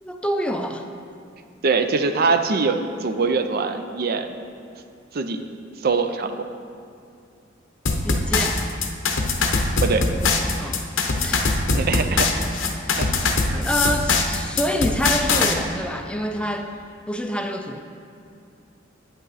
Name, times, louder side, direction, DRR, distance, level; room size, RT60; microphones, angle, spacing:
voice 1, 0.0-0.9 8.0-8.7 10.6-11.5 13.5-16.7 17.1-17.8, equal, 5° left, 5 dB, 0.4 m, -27 dB
voice 2, 1.6-4.4 5.1-5.4 5.8-6.5 9.8-10.1 11.7-12.4 13.0-13.1, right 4 dB, 50° right, 8 dB, 0.5 m, -23 dB
sound 1, 7.9-15.5, left 3 dB, 80° left, 0.8 m, -22 dB
8.7 x 8.1 x 4.0 m, 2.5 s
head